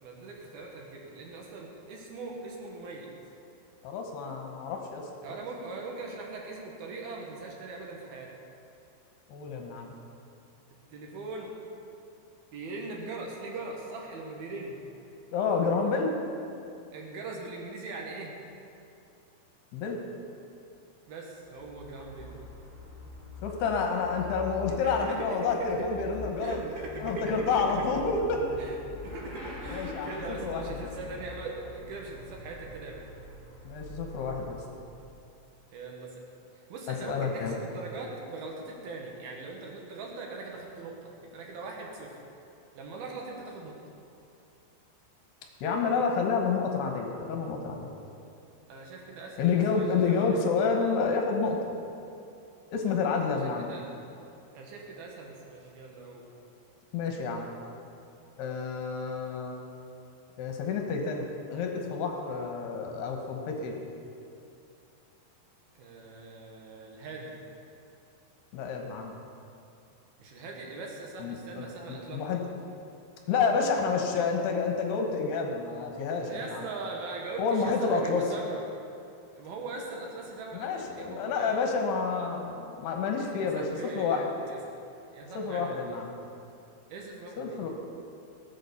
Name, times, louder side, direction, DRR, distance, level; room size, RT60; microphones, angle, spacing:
voice 1, 0.0-3.1 5.2-8.3 10.9-11.5 12.5-14.8 16.9-18.4 21.1-22.4 24.8-25.2 25.4-25.7 26.4-27.5 28.6-28.8 29.0-33.1 35.7-36.2 36.5-42.2 42.7-43.8 48.7-49.4 49.7-50.4 53.0-53.8 54.5-56.2 65.8-67.3 70.2-72.3 76.3-78.6 79.4-81.6 83.4-84.6 85.1-86.0 86.9-87.6, right 3 dB, 65° right, -1 dB, 3.2 m, -41 dB
voice 2, 3.8-5.0 5.3-5.4 9.3-9.9 15.3-16.1 19.7-20.0 23.4-26.6 27.0-28.4 29.7-30.1 30.4-30.8 33.6-34.6 37.1-37.6 45.6-47.9 49.4-51.6 52.7-53.7 56.9-57.5 58.4-59.6 60.4-63.7 68.5-69.1 71.2-72.4 73.3-76.6 77.4-78.2 80.5-83.6 84.0-84.3 85.3-86.1 87.4-87.7, left 5 dB, 75° left, 2 dB, 3.0 m, -29 dB
Motorcycle / Accelerating revving vroom, 21.4-35.3, left 2 dB, 25° left, 1.9 m, -44 dB
17.5 x 8.3 x 7.0 m, 2.7 s
omnidirectional pair, 5.1 m